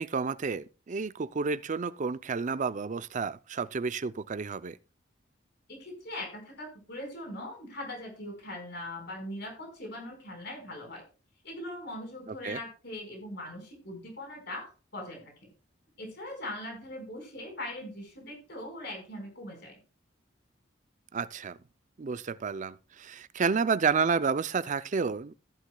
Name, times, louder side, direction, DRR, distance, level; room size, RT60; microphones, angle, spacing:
voice 1, 0.0-4.8 12.4-12.6 21.1-21.6 22.0-25.3, right 5 dB, 40° right, 0.5 m, -30 dB
voice 2, 5.7-11.0 11.4-15.5 16.0-19.8, left 1 dB, 60° left, 4.7 m, -41 dB
14.5 x 11.5 x 2.3 m
head